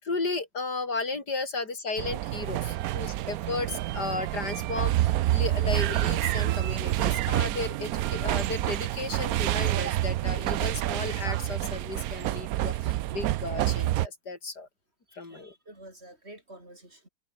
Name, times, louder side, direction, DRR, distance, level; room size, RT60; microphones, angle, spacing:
voice 1, 0.0-14.7 15.2-15.5, left 3 dB, 75° left, 4.9 m, -34 dB
sound 1, 2.0-14.1, right 15 dB, 70° right, 1.0 m, -28 dB
voice 2, 15.1-17.1, right 1 dB, 40° right, 8.3 m, -49 dB
open air
omnidirectional pair, 1.8 m